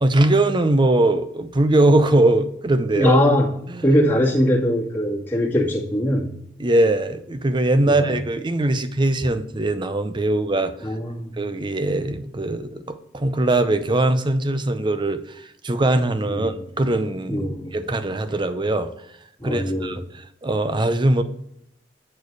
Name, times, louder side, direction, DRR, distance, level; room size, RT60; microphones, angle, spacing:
voice 1, 0.0-3.2 3.7-3.9 6.6-10.7 11.4-18.9 19.4-21.2, right 2 dB, 25° right, 10 dB, 0.6 m, -21 dB
voice 2, 3.0-3.5 3.8-6.3 7.9-8.0 10.8-11.3 16.3-16.5 17.3-17.8 19.4-20.0, equal, 10° left, -7 dB, 2.1 m, -21 dB
8.6 x 4.5 x 4.7 m, 0.74 s
head